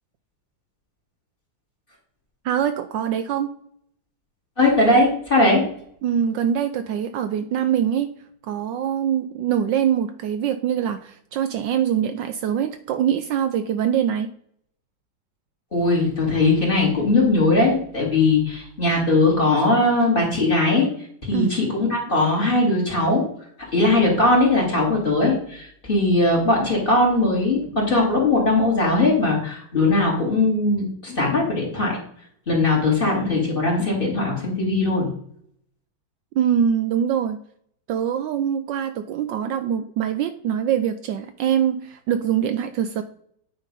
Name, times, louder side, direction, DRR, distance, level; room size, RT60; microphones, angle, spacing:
voice 1, 2.4-3.5 6.0-8.1 8.4-14.3 21.3-21.6 36.3-37.4 37.9-43.0, right 9 dB, 75° right, 9 dB, 1.1 m, -23 dB
voice 2, 4.6-5.6 15.7-20.9 21.2-23.2 23.7-32.0 32.5-35.1, left 2 dB, 25° left, -2 dB, 2.4 m, -20 dB
9.0 x 3.8 x 5.3 m, 0.65 s
omnidirectional pair, 2.2 m